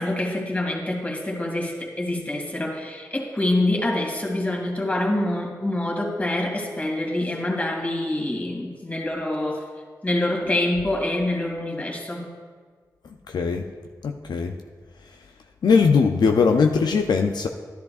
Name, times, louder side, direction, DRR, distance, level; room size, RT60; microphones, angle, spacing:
voice 1, 0.0-9.6 10.0-12.3, left 1 dB, 20° left, 0 dB, 2.3 m, -26 dB
voice 2, 13.3-13.7 14.0-14.5 15.6-17.5, left 5 dB, 80° left, 4 dB, 0.5 m, -20 dB
12.0 x 10.5 x 2.4 m, 1.5 s
cardioid pair, 40°, 7 cm